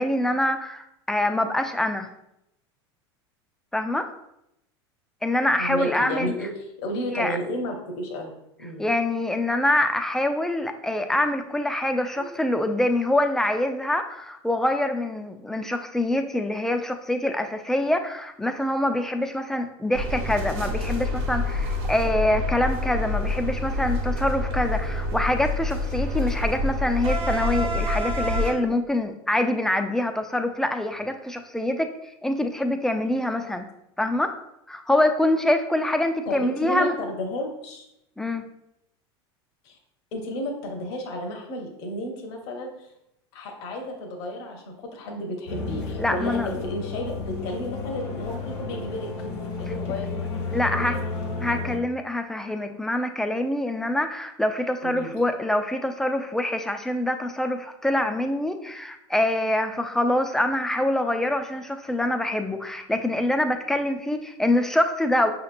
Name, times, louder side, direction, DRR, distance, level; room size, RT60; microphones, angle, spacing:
voice 1, 0.0-2.1 3.7-4.1 5.2-6.3 7.1-7.4 8.8-31.9 32.2-33.7 34.0-34.3 34.7-36.9 38.2-38.5 46.0-46.5 50.5-51.0 51.4-65.3, left 1 dB, 5° left, 6 dB, 0.3 m, -25 dB
voice 2, 5.6-6.5 6.8-8.9 12.1-12.3 36.3-37.8 39.6-39.8 40.1-42.9 43.3-49.1 49.6-51.1 54.8-55.1, left 1 dB, 60° left, 2 dB, 0.8 m, -32 dB
sound 1, 19.9-28.5, left 2 dB, 70° right, 1.0 m, -27 dB
sound 2, 45.5-51.8, left 4 dB, 90° left, 1.2 m, -32 dB
5.6 x 2.9 x 2.5 m, 0.82 s
hypercardioid pair, 105°, 14 cm